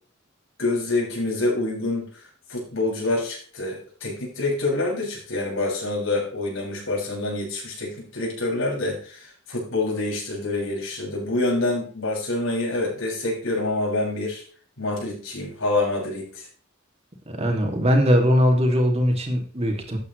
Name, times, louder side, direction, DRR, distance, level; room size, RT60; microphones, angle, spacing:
voice 1, 0.6-2.1 2.5-14.4 14.8-16.5, left 2 dB, 85° left, -4 dB, 6.7 m, -26 dB
voice 2, 17.3-20.0, equal, 30° right, 2 dB, 2.6 m, -20 dB
13.0 x 9.2 x 3.3 m, 0.43 s
head